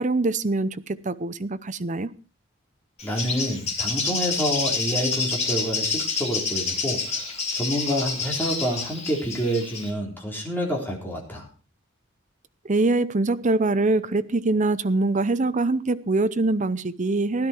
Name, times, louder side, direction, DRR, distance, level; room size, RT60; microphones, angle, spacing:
voice 1, 0.0-2.1 12.6-17.5, right 2 dB, 35° right, 12 dB, 0.7 m, -23 dB
Bird, 3.0-9.9, left 4 dB, 30° left, 3.1 m, -28 dB
voice 2, 3.0-7.2 7.5-11.5, equal, 10° left, -1 dB, 3.9 m, -28 dB
16.0 x 11.5 x 4.5 m, 0.35 s
head